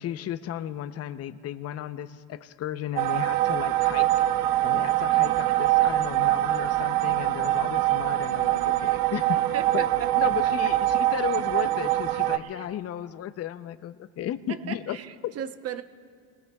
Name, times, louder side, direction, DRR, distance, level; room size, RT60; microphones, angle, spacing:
voice 1, 0.0-9.4 9.7-9.9 10.1-15.0 15.2-15.4, left 11 dB, 40° left, 12 dB, 0.7 m, -34 dB
sound 1, 3.0-12.4, right 15 dB, 65° right, 0.9 m, -24 dB
voice 2, 9.5-10.3 12.1-12.7 14.5-15.8, right 8 dB, 40° right, 10 dB, 0.9 m, -38 dB
29.5 x 20.5 x 2.4 m, 2.1 s
supercardioid pair, 115°, 39 cm